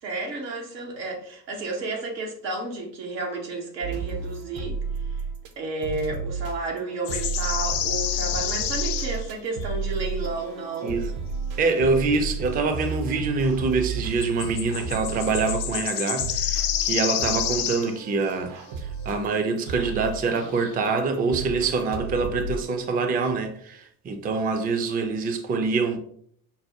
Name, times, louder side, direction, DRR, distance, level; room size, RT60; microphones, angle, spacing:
voice 1, 0.0-4.8 5.6-11.0, right 3 dB, 85° right, 1.0 m, -31 dB
sound 1, 3.8-5.5 5.8-22.5, right 3 dB, 60° right, 0.7 m, -33 dB
sound 2, 7.0-9.2 9.6-9.8 14.2-18.0 19.7-20.0 20.3-20.7, left 10 dB, 65° left, 0.6 m, -29 dB
voice 2, 11.6-18.5 18.8-26.0, right 4 dB, 20° right, 0.4 m, -25 dB
5.3 x 2.0 x 2.8 m
hypercardioid pair, 70°, 48 cm